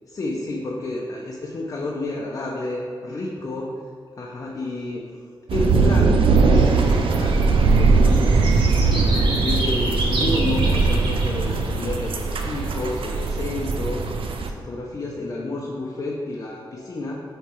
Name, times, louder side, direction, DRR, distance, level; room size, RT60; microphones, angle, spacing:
voice 1, 0.1-3.7 4.2-5.0 5.5-8.4 9.3-14.0 14.4-17.2, left 2 dB, 40° left, -3 dB, 0.6 m, -30 dB
sound 1, 5.5-14.5, right 4 dB, 85° right, 0.5 m, -20 dB
sound 2, 6.5-11.8, left 1 dB, 35° right, 1.1 m, -34 dB
sound 3, 6.5-13.3, right 1 dB, 70° right, 1.5 m, -32 dB
8.3 x 3.2 x 4.4 m, 2.1 s
wide cardioid pair, 160°, 9 cm